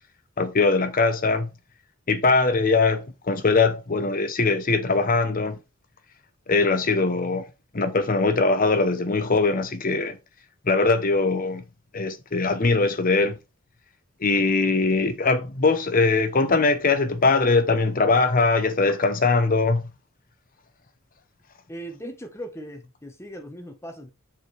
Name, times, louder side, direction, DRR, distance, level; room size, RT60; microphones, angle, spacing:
voice 1, 0.4-1.5 2.1-5.6 6.5-7.4 7.7-10.2 10.6-11.6 11.9-13.4 14.2-19.9, left 3 dB, 45° left, 0.9 m, -21 dB
voice 2, 21.7-24.1, equal, 15° left, 1.2 m, -38 dB
7.2 x 4.9 x 3.4 m
head